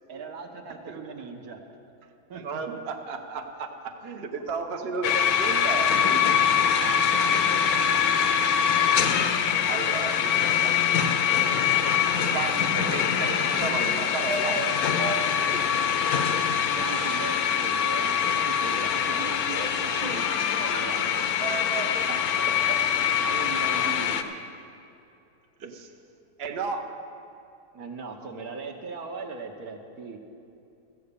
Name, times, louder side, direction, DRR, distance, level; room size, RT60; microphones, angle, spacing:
voice 1, 0.1-1.6 2.3-2.4 7.1-7.8 11.5-11.7 16.8-21.3 23.2-24.3 27.7-30.2, right 4 dB, 65° right, 4 dB, 1.4 m, -39 dB
voice 2, 2.3-6.5 9.6-10.9 12.3-16.3 19.1-19.3 21.4-22.8 25.6-25.9 26.4-26.9, right 4 dB, 45° right, 4 dB, 0.9 m, -34 dB
sound 1, 5.0-24.2, left 8 dB, 65° left, 1.1 m, -24 dB
14.5 x 8.5 x 6.8 m, 2.6 s
omnidirectional pair, 1.8 m